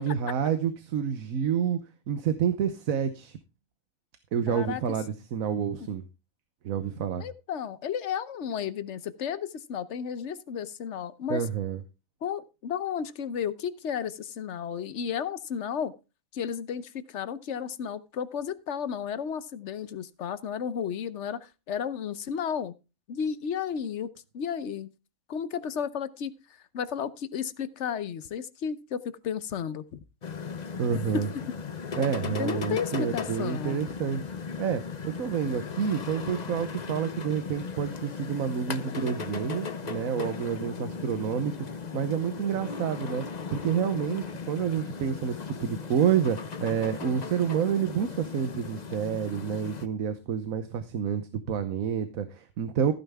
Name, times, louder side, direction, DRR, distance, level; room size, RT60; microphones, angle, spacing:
voice 1, 0.0-1.8 2.1-3.4 4.3-6.0 6.6-7.2 11.3-11.8 30.8-31.3 32.0-34.2 34.6-41.5 41.9-43.2 43.5-52.9, right 8 dB, 80° right, 10 dB, 1.3 m, -28 dB
voice 2, 4.5-4.8 5.8-5.9 7.2-11.4 12.2-15.9 16.3-22.7 23.1-24.1 24.3-24.9 25.3-26.3 26.7-30.0 31.1-31.3 32.2-33.8, left 7 dB, 60° left, 15 dB, 1.1 m, -33 dB
sound 1, 30.2-49.9, left 5 dB, 35° left, 0.8 m, -37 dB
14.5 x 9.1 x 3.5 m, 0.30 s
omnidirectional pair, 1.4 m